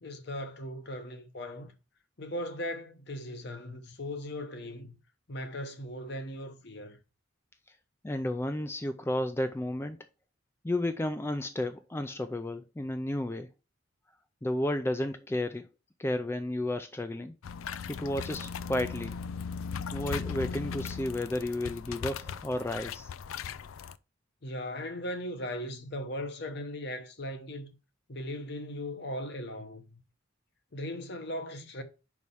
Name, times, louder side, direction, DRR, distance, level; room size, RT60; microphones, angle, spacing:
voice 1, 0.0-1.7 2.2-4.9 5.3-7.0 24.4-27.7 28.1-30.0 30.7-31.8, left 1 dB, 55° left, 1.0 m, -38 dB
voice 2, 8.0-10.0 10.6-13.5 14.4-15.7 16.0-17.3 17.9-19.1 19.9-23.1, left 1 dB, 10° left, 0.3 m, -32 dB
sound 1, 17.4-23.9, left 6 dB, 90° left, 0.4 m, -38 dB
5.5 x 4.7 x 5.5 m
head